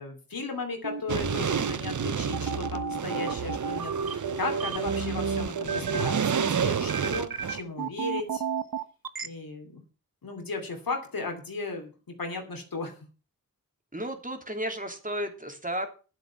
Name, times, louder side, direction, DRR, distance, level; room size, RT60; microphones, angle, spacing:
voice 1, 0.0-8.4 9.2-9.8 10.2-11.9 12.2-12.9, left 3 dB, 80° left, 3 dB, 2.8 m, -35 dB
sound 1, 0.8-9.3, right 5 dB, 80° right, 1.1 m, -32 dB
sound 2, 1.1-7.6, right 7 dB, 60° right, 0.7 m, -30 dB
voice 2, 13.9-15.9, right 1 dB, 25° right, 4 dB, 2.9 m, -33 dB
10.5 x 7.9 x 7.2 m, 0.36 s
wide cardioid pair, 70°, 35 cm